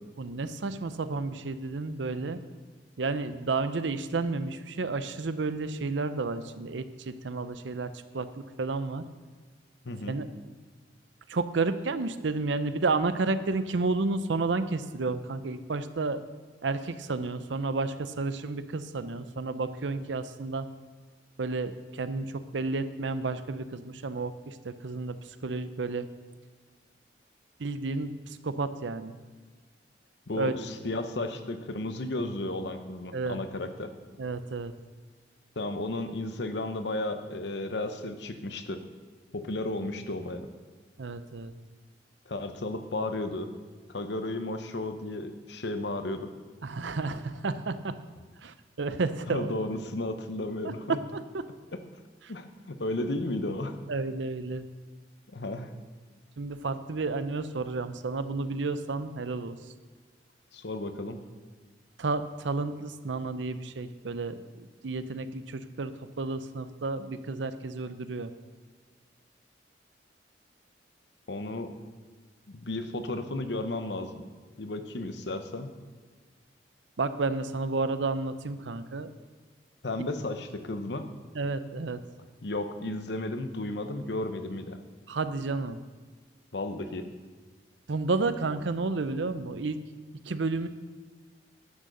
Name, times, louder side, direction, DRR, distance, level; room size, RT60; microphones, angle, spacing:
voice 1, 0.2-2.4 3.0-9.0 10.1-10.3 11.3-16.2 16.6-20.7 21.4-26.1 27.6-29.2 30.3-30.6 33.1-33.4 34.2-34.7 41.0-41.5 46.6-48.0 48.4-49.5 50.6-51.4 53.9-54.7 56.4-59.7 62.0-68.3 77.0-79.1 81.3-82.0 85.1-85.8 87.9-89.8 90.2-90.7, right 3 dB, 85° right, 12 dB, 0.6 m, -31 dB
voice 2, 9.8-10.2 30.3-33.9 35.6-38.8 39.3-40.5 42.3-43.5 43.9-46.3 49.3-51.0 52.3-53.8 55.3-55.7 60.5-61.2 71.3-71.7 72.5-74.2 74.6-75.7 79.8-81.0 82.4-84.8 86.5-87.1, left 2 dB, 70° left, 8 dB, 0.9 m, -33 dB
11.0 x 6.4 x 6.7 m, 1.4 s
head